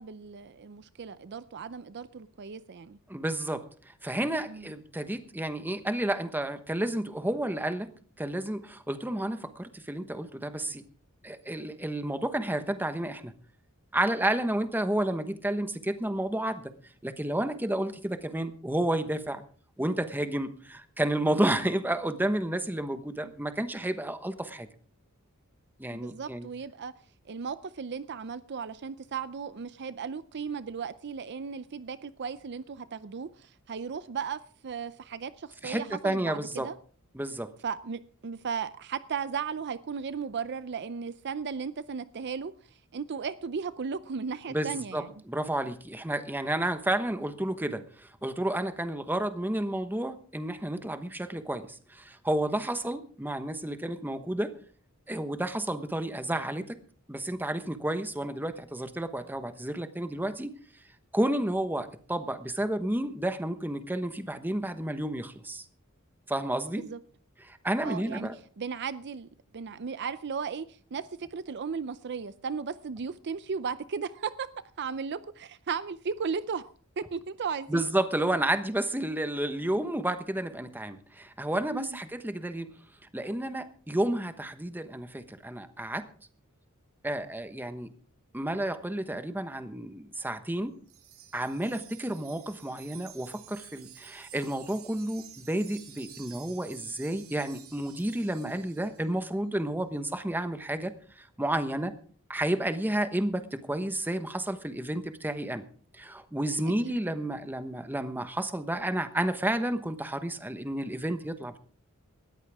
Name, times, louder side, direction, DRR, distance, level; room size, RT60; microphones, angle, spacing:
voice 1, 0.0-3.0 4.5-4.7 25.9-26.9 27.3-36.7 37.6-42.5 42.9-45.1 66.8-67.0 67.8-68.3 68.6-69.3 69.5-70.7 70.9-74.5 74.8-76.7 77.0-77.8 81.7-81.9 106.8-106.9, right 6 dB, 55° right, 15 dB, 0.5 m, -36 dB
voice 2, 3.1-3.6 4.0-7.9 8.2-10.8 11.2-13.3 13.9-16.7 17.0-19.4 19.8-24.7 25.8-26.5 35.6-36.7 37.1-37.5 44.5-54.5 55.1-56.8 57.1-60.5 61.1-65.6 66.3-66.8 67.4-68.4 77.7-82.7 83.1-86.1 87.0-87.9 88.3-90.7 91.3-101.9 102.3-105.6 105.9-111.6, right 1 dB, 10° right, 9 dB, 1.1 m, -31 dB
Wind chime, 90.9-99.1, right 11 dB, 75° right, 2.2 m, -51 dB
19.0 x 14.0 x 3.5 m, 0.43 s
head